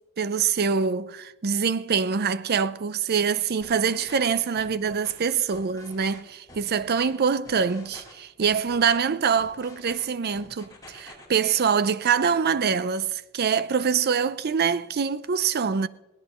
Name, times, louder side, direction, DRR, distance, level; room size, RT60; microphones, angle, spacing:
voice 1, 0.2-15.9, right 6 dB, 45° right, 0.5 m, -24 dB
sound 1, 3.6-4.3 4.6-5.1 5.5-6.2 6.5-7.0 7.5-8.1 8.4-9.0 9.4-10.1 10.3-11.3, left 2 dB, 20° left, 4.9 m, -47 dB
22.0 x 17.5 x 3.0 m
head